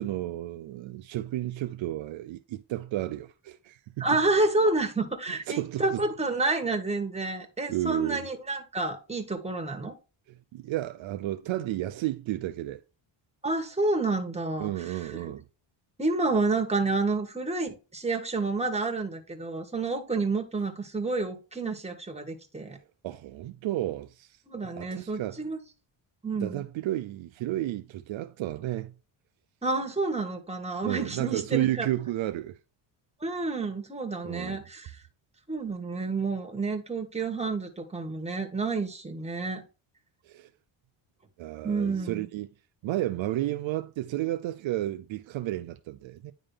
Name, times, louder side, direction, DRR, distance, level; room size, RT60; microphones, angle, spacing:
voice 1, 0.0-4.1 5.5-6.0 7.7-8.3 10.5-12.8 14.6-15.4 22.7-22.8 23.0-24.4 24.8-25.4 26.4-28.9 30.8-32.6 34.2-34.6 40.2-40.5 41.4-42.5 42.8-46.3, right 14 dB, 70° right, 0.6 m, -32 dB
voice 2, 4.0-9.9 13.4-15.3 16.0-22.8 24.5-25.6 26.2-26.6 29.6-31.9 33.2-35.0 35.5-39.6 41.6-42.2, right 3 dB, 15° right, 1.8 m, -29 dB
9.9 x 3.8 x 3.4 m
cardioid pair, 100°, 49 cm